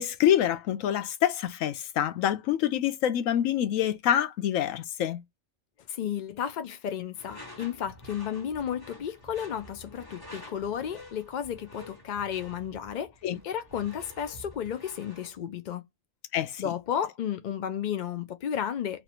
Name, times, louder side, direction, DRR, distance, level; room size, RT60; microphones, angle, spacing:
voice 1, 0.0-5.2 13.2-13.4 16.3-16.7, left 11 dB, 90° left, 1.0 m, -26 dB
voice 2, 5.9-13.1 13.4-15.8 16.6-19.0, left 9 dB, 70° left, 0.4 m, -33 dB
Door / Screech, 7.1-15.4, equal, 20° left, 1.3 m, -48 dB
3.3 x 2.5 x 2.8 m
omnidirectional pair, 1.3 m